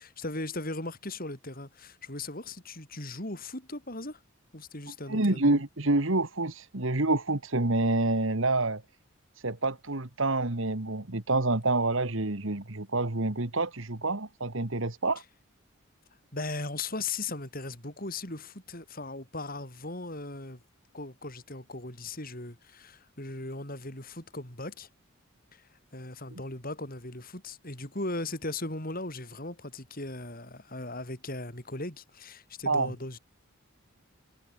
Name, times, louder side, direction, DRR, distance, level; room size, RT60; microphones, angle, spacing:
voice 1, 0.0-4.2 4.5-5.6 16.3-20.6 20.9-24.9 25.5-25.6 25.9-33.2, left 2 dB, 40° left, 5.1 m, -38 dB
voice 2, 5.1-8.8 9.4-15.2 26.3-26.4 32.7-32.9, right 2 dB, 65° right, 1.9 m, -27 dB
head